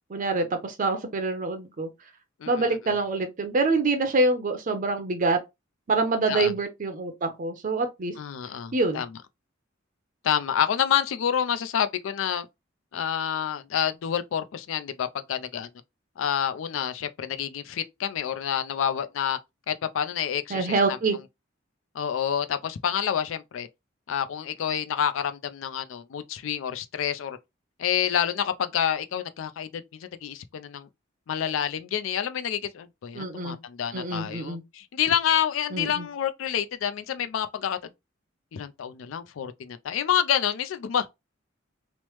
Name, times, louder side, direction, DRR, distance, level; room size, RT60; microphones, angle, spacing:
voice 1, 0.1-1.9 2.5-5.4 5.9-8.1 8.7-9.0 20.5-21.2 33.1-33.6 33.9-34.6 35.7-36.0, right 3 dB, 40° right, 0.5 m, -26 dB
voice 2, 2.4-3.0 6.3-6.5 8.2-9.1 10.2-12.5 12.9-15.7 16.2-19.4 19.7-21.0 21.9-23.7 24.1-27.4 27.8-30.9 31.3-37.8 38.5-41.1, left 9 dB, 75° left, 0.4 m, -28 dB
3.0 x 2.0 x 3.0 m
head